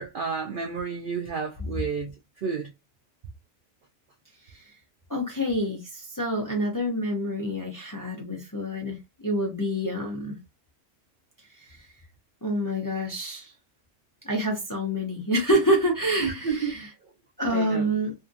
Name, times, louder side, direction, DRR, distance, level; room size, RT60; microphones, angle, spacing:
voice 1, 0.0-2.1 2.4-2.7 16.2-16.7 17.5-17.9, right 5 dB, 85° right, 0.4 m, -31 dB
voice 2, 5.1-9.0 9.2-10.4 11.7-11.8 12.4-13.5 14.2-16.9 17.4-18.1, equal, 25° left, 0.4 m, -27 dB
2.7 x 2.5 x 2.5 m
omnidirectional pair, 1.5 m